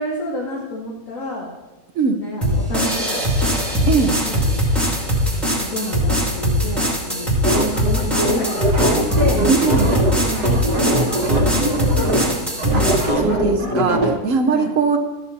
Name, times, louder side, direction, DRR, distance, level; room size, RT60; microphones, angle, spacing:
voice 1, 0.0-1.5 2.1-3.5 4.3-4.7 5.5-8.9 9.2-9.5 10.2-12.9 13.6-14.2 14.5-14.7, left 1 dB, 55° left, -3 dB, 2.2 m, -29 dB
sound 1, 2.4-13.1, equal, ahead, 2.8 m, -21 dB
voice 2, 3.9-4.2 9.5-10.0 12.7-12.8 13.2-15.0, right 5 dB, 55° right, 5 dB, 1.1 m, -20 dB
sound 2, 7.4-14.2, right 1 dB, 75° right, 2.2 m, -21 dB
13.5 x 8.8 x 4.2 m, 1.1 s
omnidirectional pair, 1.7 m